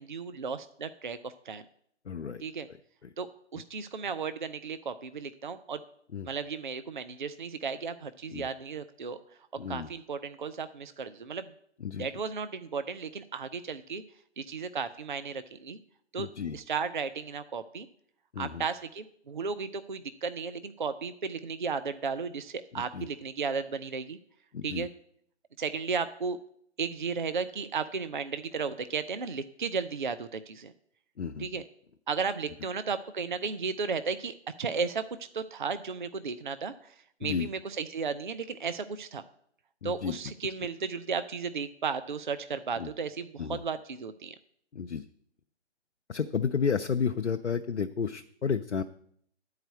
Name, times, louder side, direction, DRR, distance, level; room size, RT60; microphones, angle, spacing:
voice 1, 0.0-1.6 2.4-2.7 3.2-5.8 6.2-9.4 9.7-11.5 11.9-14.0 14.4-15.8 16.1-16.3 16.5-17.9 18.4-24.2 24.6-24.9 25.6-26.4 26.8-30.7 31.4-31.6 32.1-39.2 39.8-44.4, right 5 dB, 45° right, 11 dB, 0.4 m, -34 dB
voice 2, 2.1-2.4 6.1-6.3 8.3-8.5 9.6-9.9 11.8-12.1 16.2-16.6 18.3-18.6 22.9-23.0 24.5-24.8 31.2-31.5 37.2-37.5 39.8-40.2 42.8-42.9 43.4-43.6 44.7-45.0 46.1-48.8, left 6 dB, 75° left, 7 dB, 0.6 m, -31 dB
10.0 x 4.8 x 8.0 m, 0.68 s
figure-of-eight pair, 145°, 35 cm